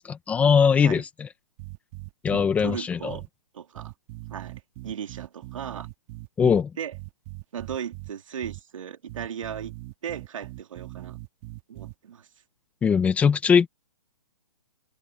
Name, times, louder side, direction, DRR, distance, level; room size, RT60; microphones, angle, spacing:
voice 1, 0.3-1.3 2.2-3.2 6.4-6.7 12.8-13.7, left 6 dB, 5° left, 1.1 m, -20 dB
sound 1, 1.6-2.8 3.1-3.3 3.8-6.6 6.9-8.1 8.4-8.6 9.1-11.9, right 19 dB, 25° right, 2.1 m, -40 dB
voice 2, 2.3-3.2 3.5-3.9 4.3-5.9 6.4-6.9 7.5-9.7 10.0-11.2 11.7-12.3, right 8 dB, 60° right, 3.0 m, -37 dB
hypercardioid pair, 165°, 19 cm